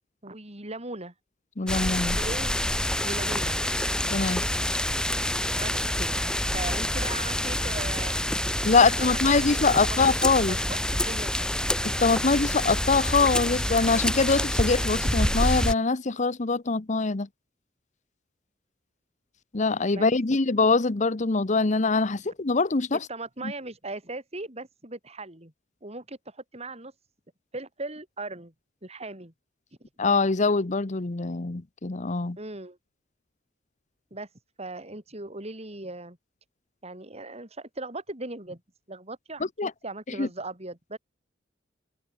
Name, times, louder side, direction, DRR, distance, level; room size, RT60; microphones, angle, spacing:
voice 1, 0.2-1.1 2.1-2.5 3.0-3.6 5.6-6.2 6.5-8.2 8.7-9.2 9.5-9.8 10.2-11.5 19.9-20.4 23.1-25.5 25.8-26.9 27.5-28.5 28.8-29.3 29.8-29.9 32.4-32.8 34.1-34.3 34.6-36.2 36.8-38.6 38.9-41.0, right 2 dB, 35° right, 5.4 m, -38 dB
voice 2, 1.6-2.2 4.1-4.4 8.7-10.6 11.8-17.3 19.5-23.0 30.0-32.4 39.6-39.7 40.2-40.3, left 4 dB, 40° left, 0.9 m, -23 dB
sound 1, 1.7-15.7, left 1 dB, 5° left, 2.0 m, -27 dB
head